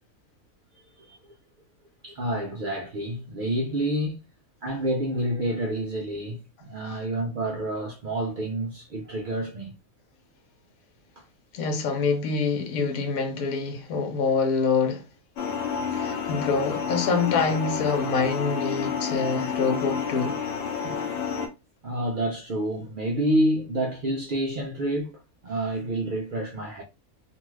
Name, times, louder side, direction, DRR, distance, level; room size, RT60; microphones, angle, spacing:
voice 1, 2.0-4.2 4.6-9.8 11.2-11.3 20.8-21.1 21.8-26.8, right 1 dB, 75° right, 0.4 m, -28 dB
voice 2, 11.5-15.0 15.9-20.4, left 4 dB, 70° left, 1.2 m, -26 dB
sound 1, 15.4-21.5, left 6 dB, 55° left, 0.8 m, -30 dB
2.7 x 2.3 x 3.1 m
omnidirectional pair, 1.6 m